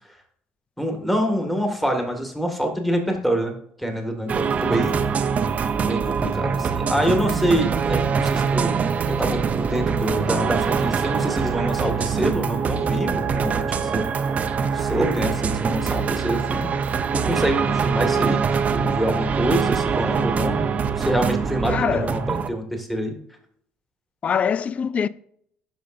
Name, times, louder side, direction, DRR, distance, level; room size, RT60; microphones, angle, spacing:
voice 1, 0.8-5.0 5.8-8.8 9.1-14.1 14.7-16.7 17.1-23.1, equal, 5° left, 1.8 m, -26 dB
sound 1, 4.3-22.5, right 6 dB, 40° right, 0.7 m, -23 dB
voice 2, 21.7-22.1 24.2-25.1, left 7 dB, 35° left, 0.3 m, -23 dB
12.0 x 5.3 x 2.6 m
cardioid pair, 115°, 4 cm